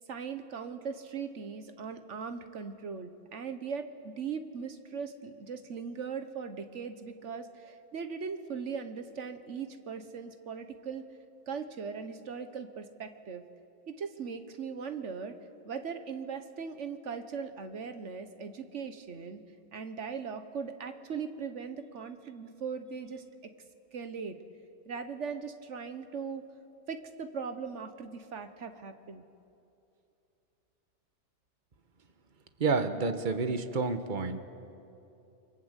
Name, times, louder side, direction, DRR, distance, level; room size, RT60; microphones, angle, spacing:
voice 1, 0.1-11.0 11.5-13.4 13.9-15.4 15.6-19.4 19.7-23.5 23.9-24.4 24.9-26.4 26.9-29.2, right 6 dB, 80° right, 9 dB, 1.4 m, -39 dB
voice 2, 32.6-34.4, right 4 dB, 40° right, 9 dB, 1.4 m, -29 dB
29.5 x 24.0 x 8.2 m, 2.7 s
omnidirectional pair, 1.2 m